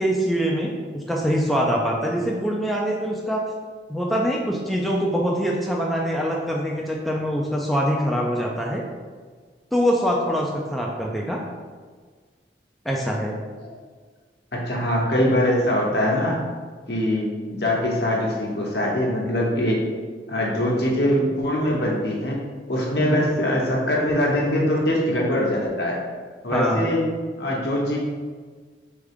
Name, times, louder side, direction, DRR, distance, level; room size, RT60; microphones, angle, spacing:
voice 1, 0.0-3.4 3.9-8.8 9.7-11.4 12.9-13.3 23.0-23.1 26.5-26.8, equal, ahead, -2 dB, 0.3 m, -24 dB
voice 2, 14.5-16.4 16.9-19.8 20.3-22.4 22.7-26.0 26.4-27.0 27.4-28.0, left 1 dB, 65° left, -2 dB, 0.9 m, -22 dB
3.6 x 3.4 x 3.5 m, 1.5 s
head